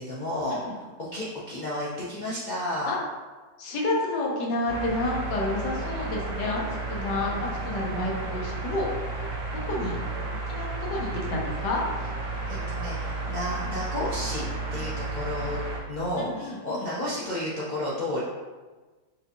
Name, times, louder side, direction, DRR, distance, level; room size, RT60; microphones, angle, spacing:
voice 1, 0.0-2.9 12.3-14.5 14.7-15.6 15.9-18.2, left 1 dB, 75° left, -8 dB, 0.4 m, -32 dB
voice 2, 3.6-6.6 6.9-8.9 9.5-10.0 10.3-11.8 16.2-16.8, left 2 dB, 90° left, -2 dB, 1.4 m, -30 dB
sound 1, 4.7-15.8, right 3 dB, 65° right, 0.8 m, -32 dB
5.4 x 2.6 x 2.7 m, 1.3 s
omnidirectional pair, 1.8 m